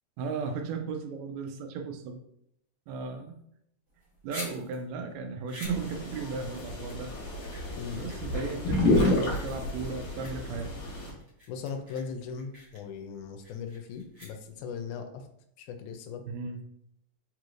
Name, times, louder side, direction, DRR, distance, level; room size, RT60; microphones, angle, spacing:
voice 1, 0.2-2.2 2.9-3.4 4.2-7.1 7.9-10.8 16.3-16.6, right 5 dB, 80° right, 5 dB, 1.7 m, -35 dB
sound 1, 3.9-14.8, equal, 50° right, 1.0 m, -48 dB
sound 2, 5.7-11.1, left 2 dB, 60° left, 2.0 m, -30 dB
voice 2, 11.5-15.3 15.6-16.2, left 6 dB, 85° left, 7 dB, 2.0 m, -38 dB
4.7 x 3.1 x 2.4 m, 0.74 s
omnidirectional pair, 3.4 m